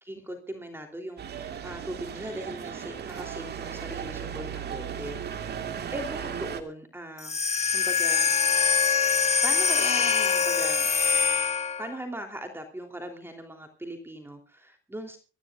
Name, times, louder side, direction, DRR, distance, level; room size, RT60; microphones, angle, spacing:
voice 1, 0.0-5.5 5.9-7.4 7.7-8.3 9.4-10.9 11.8-15.2, right 1 dB, 10° right, 5 dB, 3.2 m, -39 dB
sound 1, 1.2-6.6, right 8 dB, 55° right, 2.3 m, -36 dB
sound 2, 7.2-12.0, left 6 dB, 35° left, 1.2 m, -24 dB
24.0 x 14.0 x 2.5 m, 0.35 s
cardioid pair, 90°, 20 cm